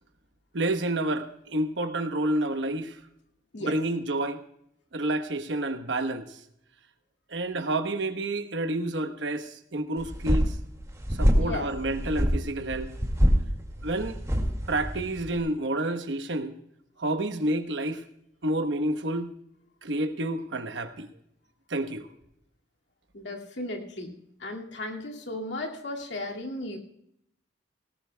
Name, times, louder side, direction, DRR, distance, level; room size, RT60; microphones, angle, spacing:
voice 1, 0.5-3.0 3.6-4.4 4.9-6.3 7.3-10.5 11.2-12.9 13.8-14.2 14.7-16.5 17.0-18.0 18.4-19.3 19.8-21.1 21.7-22.1, right 1 dB, 70° right, 8 dB, 1.1 m, -29 dB
sound 1, 10.0-15.4, equal, 15° right, 2.1 m, -26 dB
voice 2, 11.4-11.7 23.1-24.1 24.4-26.8, left 2 dB, 70° left, 1 dB, 2.2 m, -35 dB
18.5 x 18.0 x 2.3 m, 0.75 s
head